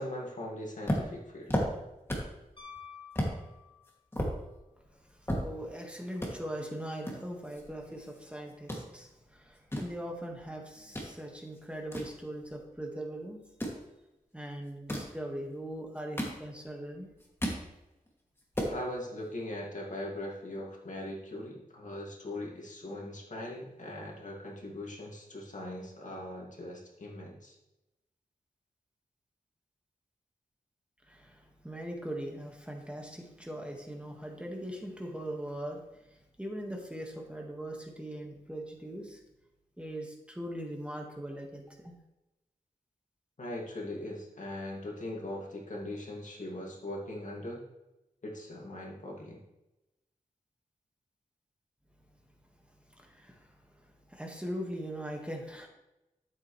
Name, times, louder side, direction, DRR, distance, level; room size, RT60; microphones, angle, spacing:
voice 1, 0.0-1.6 18.7-27.6 43.4-47.7 48.2-49.4, left 1 dB, 55° left, -2 dB, 2.3 m, -40 dB
sound 1, 0.8-2.4 2.7-2.8 3.1-3.4 3.8-5.8 6.1-6.3 7.0-8.2 8.5-8.8 9.4-11.1 11.5-12.8 13.4-13.8 14.7-15.2 15.8-16.8 17.1-17.7 18.1-18.2 18.4-18.8, equal, 15° left, 2.5 m, -34 dB
Piano, 2.6-4.1 6.5-6.6, left 7 dB, 35° left, 2.4 m, -50 dB
voice 2, 5.4-13.4 14.3-17.1 31.1-35.8 36.1-39.2 39.8-41.9 53.0-53.5 54.1-55.7, right 1 dB, 5° right, 0 dB, 1.7 m, -40 dB
12.5 x 7.7 x 3.3 m, 0.95 s
wide cardioid pair, 75°, 15 cm